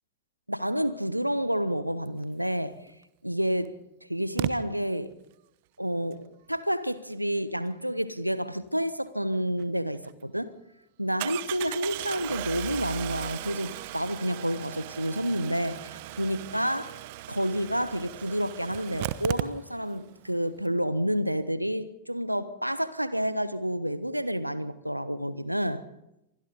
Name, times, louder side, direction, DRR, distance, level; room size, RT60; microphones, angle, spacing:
voice 1, 0.5-2.8 3.2-3.8 4.1-5.1 5.8-10.5 11.0-17.0 17.3-25.8, equal, 90° right, 1.1 m, -29 dB
Engine starting, 2.9-3.0 4.4-4.5 9.6-9.7 10.0-10.1 11.2-20.0 20.3-20.4 20.6-20.7, right 16 dB, 50° right, 0.9 m, -36 dB
28.0 x 24.5 x 4.0 m
figure-of-eight pair, 90°, 0 cm